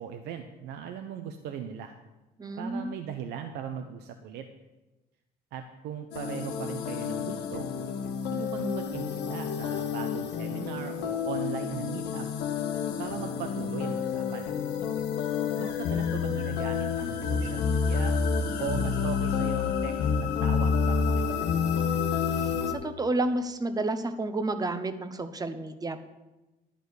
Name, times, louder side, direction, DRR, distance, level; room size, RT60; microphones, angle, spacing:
voice 1, 0.0-1.9 2.6-4.5 5.5-7.7 8.3-12.3 13.0-14.6 15.6-18.2 18.6-21.7, right 8 dB, 80° right, 5 dB, 0.8 m, -38 dB
voice 2, 2.4-2.9 22.3-26.0, right 2 dB, 20° right, 9 dB, 0.9 m, -31 dB
sound 1, 6.1-22.7, left 6 dB, 85° left, 1.2 m, -29 dB
11.5 x 5.1 x 8.0 m, 1.1 s
cardioid pair, 110°, 17 cm